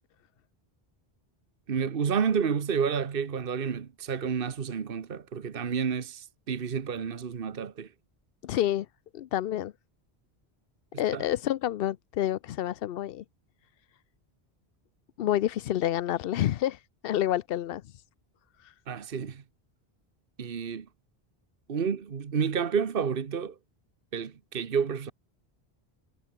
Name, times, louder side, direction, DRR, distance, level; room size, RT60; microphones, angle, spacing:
voice 1, 1.7-7.9 11.1-11.2 18.9-19.4 20.4-20.9 21.7-23.5 24.1-25.1, right 6 dB, 60° right, 1.3 m, -30 dB
voice 2, 8.4-8.9 9.1-9.7 11.0-13.2 15.2-18.0 18.6-18.7, left 12 dB, 70° left, 0.8 m, -29 dB
omnidirectional pair, 1.0 m